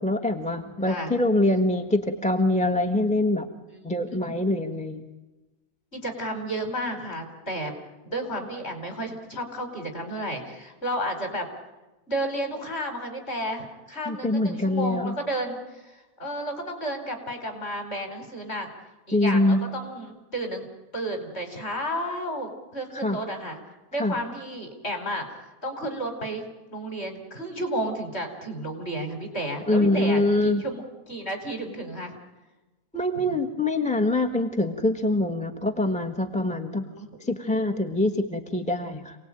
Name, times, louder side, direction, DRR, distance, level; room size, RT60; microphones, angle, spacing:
voice 1, 0.0-3.5 3.8-5.0 14.1-15.1 19.1-19.6 23.0-23.2 24.0-24.2 29.7-30.6 32.9-36.8 37.2-39.2, left 2 dB, 5° left, 4 dB, 1.1 m, -24 dB
voice 2, 0.8-1.2 3.7-4.4 5.9-7.7 8.0-11.5 12.1-18.7 19.1-20.7 20.9-23.6 23.9-25.3 25.6-26.4 26.7-32.2 33.1-33.4 36.8-37.0, right 1 dB, 35° left, 5 dB, 4.8 m, -32 dB
28.0 x 19.0 x 9.0 m, 1.1 s
omnidirectional pair, 1.9 m